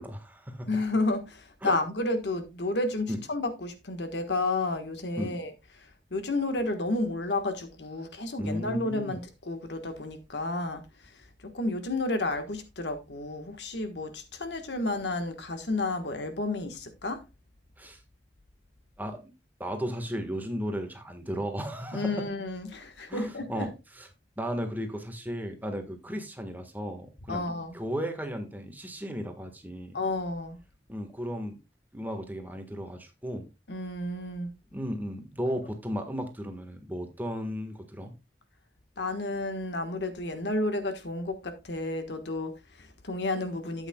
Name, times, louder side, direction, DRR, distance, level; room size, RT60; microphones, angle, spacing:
voice 1, 0.0-0.7 1.6-1.7 3.1-3.2 5.2-5.3 8.4-9.2 17.8-18.0 19.0-19.2 19.6-22.2 23.1-23.7 23.9-24.1 24.4-27.4 27.7-30.0 30.9-31.6 31.9-33.5 34.7-38.1, equal, 10° right, 1.5 m, -35 dB
voice 2, 0.7-17.2 21.9-23.7 27.3-27.7 29.9-30.6 33.7-34.5 39.0-43.9, left 2 dB, 75° left, 1.4 m, -31 dB
12.5 x 8.2 x 2.3 m
head